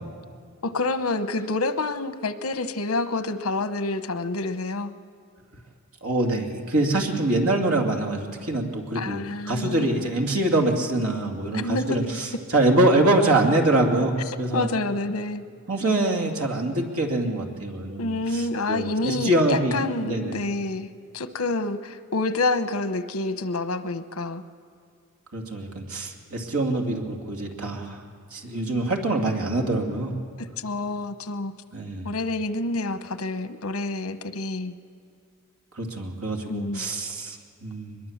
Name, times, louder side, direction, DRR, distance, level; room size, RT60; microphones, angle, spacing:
voice 1, 0.6-4.9 8.9-9.9 11.5-12.0 14.5-15.4 18.0-20.9 21.1-24.4 30.4-31.5 32.0-34.7 36.5-36.9, left 2 dB, 80° left, 11 dB, 1.0 m, -28 dB
voice 2, 6.0-14.7 15.7-20.3 25.3-28.0 28.3-30.1 31.7-32.1 35.8-38.0, right 2 dB, 80° right, 2 dB, 2.5 m, -24 dB
23.0 x 21.5 x 7.3 m, 2.2 s
head